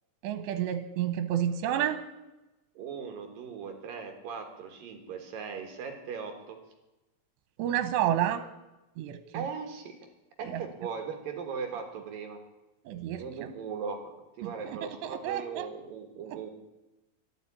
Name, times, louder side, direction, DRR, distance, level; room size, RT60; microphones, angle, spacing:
voice 1, 0.2-2.0 7.6-8.5 9.0-9.5 10.4-10.6 12.9-13.5 14.4-15.7 16.3-16.4, right 10 dB, 85° right, 11 dB, 3.0 m, -30 dB
voice 2, 2.8-6.6 9.3-9.9 10.4-12.4 13.2-16.5, right 6 dB, 60° right, 5 dB, 2.9 m, -38 dB
13.5 x 12.0 x 8.6 m, 1.0 s
omnidirectional pair, 5.0 m